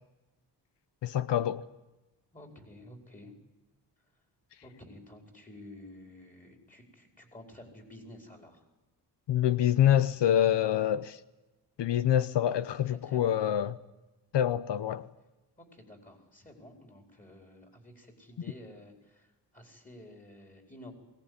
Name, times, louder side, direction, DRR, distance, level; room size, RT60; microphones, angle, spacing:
voice 1, 1.0-1.6 9.3-11.2 11.8-13.7 14.3-15.1, left 11 dB, 80° left, 0.9 m, -26 dB
voice 2, 2.3-3.4 4.6-8.7 12.8-13.6 15.6-20.9, left 1 dB, 20° left, 4.8 m, -51 dB
22.5 x 18.0 x 9.7 m
wide cardioid pair, 130°, 42 cm